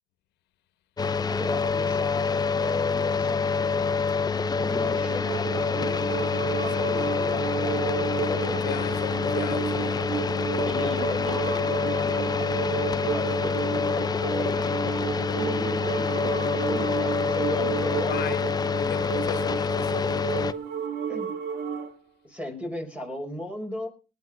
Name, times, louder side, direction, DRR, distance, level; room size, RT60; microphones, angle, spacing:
sound 1, 1.0-20.5, left 5 dB, 25° left, 0.7 m, -26 dB
voice 1, 1.2-4.1 4.6-8.6 9.7-10.0 10.6-18.2 21.1-21.3 22.2-23.9, left 1 dB, 5° right, 5.3 m, -37 dB
sound 2, 4.3-21.9, right 7 dB, 80° right, 2.6 m, -32 dB
voice 2, 8.5-10.0 18.0-20.6, left 12 dB, 80° left, 1.5 m, -36 dB
19.0 x 10.0 x 5.0 m
cardioid pair, 110°, 17 cm